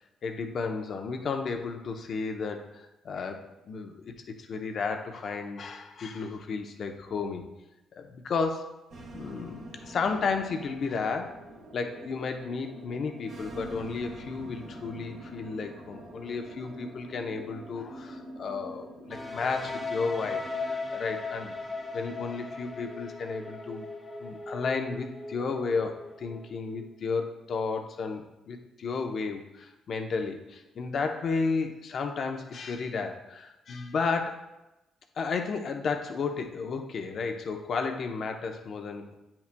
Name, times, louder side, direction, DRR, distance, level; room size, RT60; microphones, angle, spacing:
voice 1, 0.2-4.0 4.3-7.4 8.0-8.7 9.1-11.4 11.7-21.5 21.9-23.9 24.2-34.4 35.2-39.1, left 4 dB, 55° left, 4 dB, 0.8 m, -33 dB
sound 1, 8.9-22.8, right 1 dB, 80° right, 1.5 m, -46 dB
sound 2, 19.1-26.8, left 3 dB, 10° left, 1.0 m, -38 dB
9.1 x 5.9 x 2.2 m, 0.95 s
cardioid pair, 90°, 0 cm